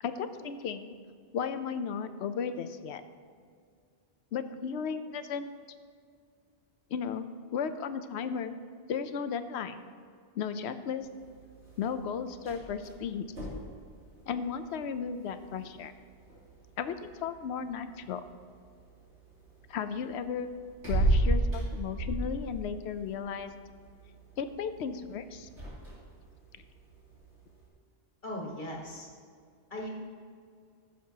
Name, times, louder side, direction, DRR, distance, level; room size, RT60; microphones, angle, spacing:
voice 1, 0.0-0.9 1.3-3.0 4.3-5.5 6.9-8.5 8.9-9.8 10.4-11.1 11.8-13.3 14.3-15.9 16.8-18.2 19.7-20.5 20.9-23.5 24.4-25.5, left 6 dB, 75° left, 10 dB, 0.9 m, -35 dB
sound 1, 11.0-27.7, right 1 dB, 85° right, 3.3 m, -36 dB
voice 2, 28.2-29.1 29.7-29.9, left 1 dB, 45° left, -1 dB, 1.7 m, -38 dB
15.5 x 7.3 x 2.9 m, 2.2 s
omnidirectional pair, 1.2 m